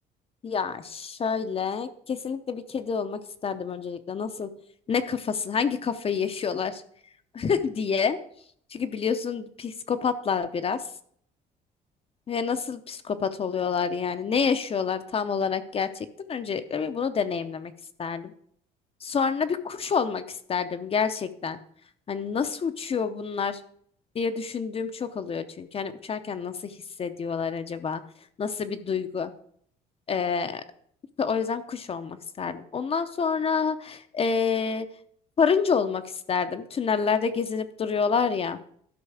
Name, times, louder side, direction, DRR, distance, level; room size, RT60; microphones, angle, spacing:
voice 1, 0.4-4.5 4.9-6.8 7.3-8.2 8.7-10.8 12.3-17.7 18.0-18.3 19.0-21.6 22.1-23.6 24.1-28.0 28.4-29.3 30.1-30.6 31.2-34.9 35.4-38.6, left 6 dB, 35° left, 10 dB, 0.7 m, -28 dB
12.0 x 5.4 x 4.9 m, 0.63 s
cardioid pair, 110°, 17 cm